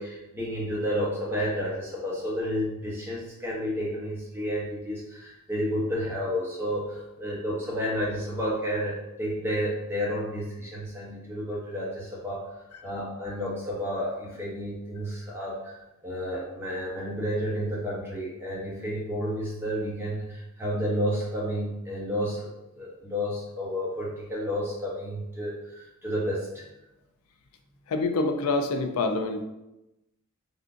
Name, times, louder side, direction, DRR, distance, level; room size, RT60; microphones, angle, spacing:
voice 1, 0.0-12.5 12.8-15.8 16.0-26.6, equal, 10° right, -6 dB, 0.9 m, -31 dB
voice 2, 27.9-29.4, left 3 dB, 70° left, 6 dB, 0.4 m, -26 dB
3.7 x 2.3 x 2.5 m, 0.94 s
head